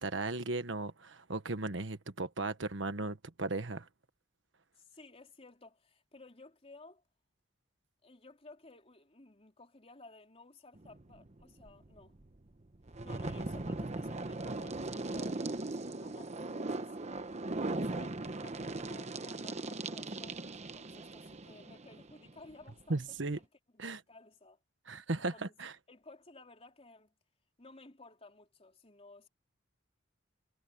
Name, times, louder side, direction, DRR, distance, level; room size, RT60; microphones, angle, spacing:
voice 1, 0.0-3.9 22.9-23.4 23.8-24.0 24.9-25.7, right 2 dB, 75° right, 1.4 m, -36 dB
voice 2, 4.8-7.0 8.0-12.1 13.0-17.3 17.7-23.5 23.7-24.6 25.2-25.5 25.9-27.1 27.6-29.3, left 2 dB, 35° left, 3.8 m, -56 dB
sound 1, 10.8-23.4, right 2 dB, 35° right, 1.0 m, -39 dB
head